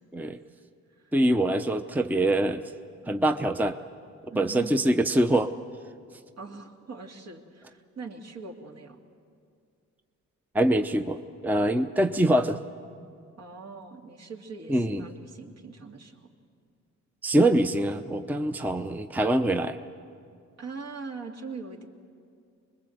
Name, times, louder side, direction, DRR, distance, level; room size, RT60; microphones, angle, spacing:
voice 1, 1.1-2.6 3.1-3.8 4.4-5.5 10.5-12.6 14.7-15.1 17.2-19.8, right 1 dB, 5° right, 8 dB, 0.7 m, -24 dB
voice 2, 4.3-5.0 6.4-9.0 13.4-16.3 20.6-21.8, right 4 dB, 60° right, 1 dB, 2.5 m, -42 dB
25.0 x 21.0 x 7.9 m, 2.3 s
cardioid pair, 90°, 30 cm